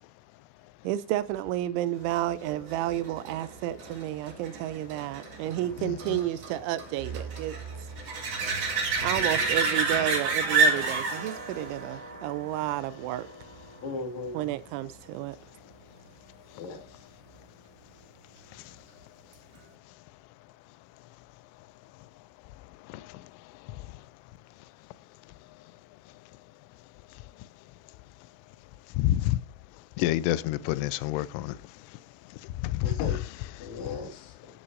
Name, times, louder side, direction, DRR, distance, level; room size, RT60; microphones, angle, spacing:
voice 1, 0.8-7.9 9.0-13.3 14.3-15.4, right 14 dB, 80° right, 2.9 m, -31 dB
sound 1, 2.4-13.7 19.3-19.4, right 4 dB, 45° right, 2.3 m, -30 dB
voice 2, 5.8-6.2 22.9-23.2 23.7-23.8 29.0-29.4 30.0-31.6 32.4-33.3 33.6-33.7, left 14 dB, 85° left, 3.1 m, -28 dB
voice 3, 9.2-9.5 13.8-14.4 16.6-16.8 32.8-33.2 33.6-34.3, left 3 dB, 50° left, 2.6 m, -36 dB
14.0 x 9.9 x 2.6 m
omnidirectional pair, 5.6 m